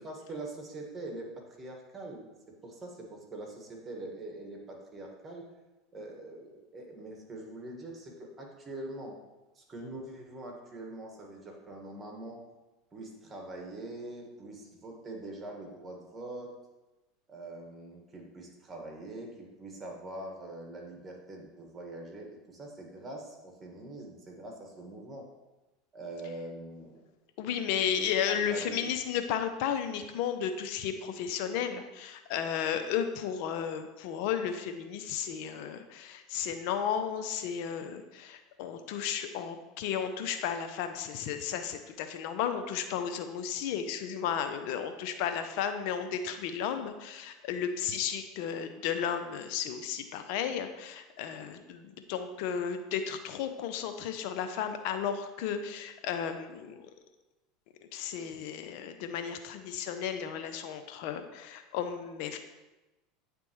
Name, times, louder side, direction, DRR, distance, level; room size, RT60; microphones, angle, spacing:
voice 1, 0.0-5.5 5.9-9.2 9.5-12.4 12.9-16.5 17.3-25.3 25.9-27.1 27.8-28.9, right 2 dB, 25° right, 1 dB, 1.6 m, -43 dB
voice 2, 27.4-56.8 57.9-62.4, left 8 dB, 65° left, 8 dB, 0.5 m, -34 dB
9.3 x 3.4 x 3.1 m, 1.1 s
hypercardioid pair, 90°, 0 cm